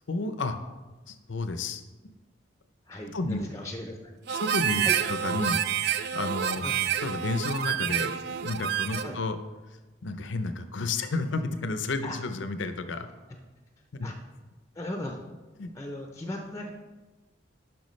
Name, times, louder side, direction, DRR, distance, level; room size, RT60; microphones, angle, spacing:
voice 1, 0.1-0.6 1.1-1.8 3.1-3.5 4.3-4.8 5.1-5.6 6.1-6.7 7.0-9.4 10.0-13.1 13.9-14.1 15.6-15.7, left 3 dB, 75° left, 9 dB, 0.6 m, -31 dB
voice 2, 2.9-4.0 4.8-4.9 6.6-6.9 9.0-9.2 12.0-12.2 14.0-14.1 14.7-15.2 15.7-16.7, left 1 dB, 15° left, 2 dB, 0.5 m, -37 dB
Harmonica, 4.3-9.2, right 9 dB, 55° right, 0.3 m, -28 dB
10.5 x 5.8 x 3.2 m, 1.2 s
head